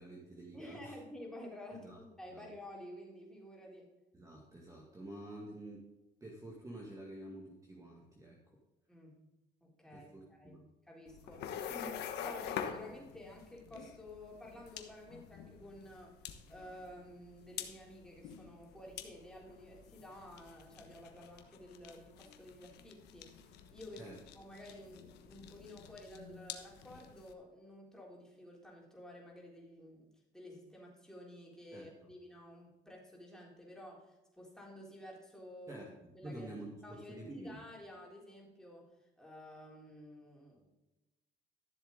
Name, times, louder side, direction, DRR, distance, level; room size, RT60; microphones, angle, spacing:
voice 1, 0.0-0.9 1.8-2.0 2.3-2.5 4.1-5.9 6.2-8.4 9.9-10.6 24.0-24.2 31.7-31.9 35.7-37.7, right 1 dB, 20° right, -1 dB, 1.9 m, -48 dB
voice 2, 0.5-3.9 8.9-9.2 9.6-30.1 30.3-35.9 36.1-36.5 36.8-40.7, left 1 dB, 5° left, -3 dB, 3.7 m, -52 dB
sound 1, 11.1-27.3, left 8 dB, 80° left, 1.2 m, -47 dB
13.0 x 7.2 x 4.0 m, 1.0 s
cardioid pair, 110°, 17 cm